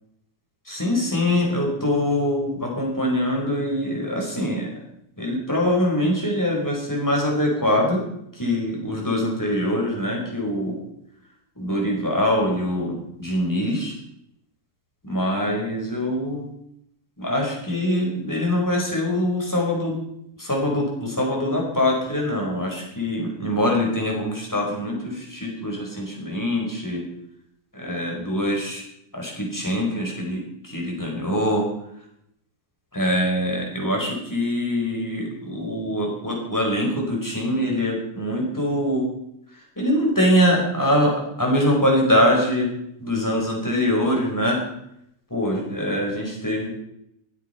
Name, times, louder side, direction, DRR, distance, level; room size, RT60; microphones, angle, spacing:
voice 1, 0.7-4.8 5.2-8.0 8.4-10.8 11.6-14.0 15.0-16.5 17.2-20.0 20.4-27.0 27.7-28.8 29.1-31.6 32.9-39.1 39.8-42.7 43.0-44.6 45.3-46.7, left 1 dB, 5° left, -2 dB, 3.7 m, -23 dB
24.0 x 8.2 x 5.7 m, 0.76 s
omnidirectional pair, 6.0 m